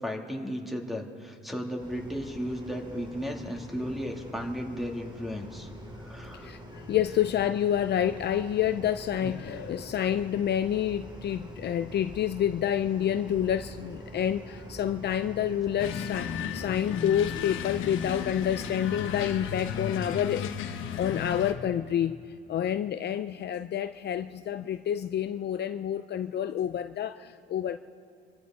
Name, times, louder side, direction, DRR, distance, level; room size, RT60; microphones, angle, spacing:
voice 1, 0.0-5.7 6.0-6.5 9.2-9.3, equal, ahead, 1 dB, 2.3 m, -35 dB
sound 1, 1.8-20.2, equal, 25° right, 2.5 m, -45 dB
voice 2, 6.4-22.2 22.5-27.8, left 10 dB, 55° left, 10 dB, 0.5 m, -28 dB
sound 2, 15.8-21.5, left 8 dB, 85° left, 1.1 m, -34 dB
27.0 x 14.5 x 3.7 m, 2.4 s
cardioid pair, 90°, 20 cm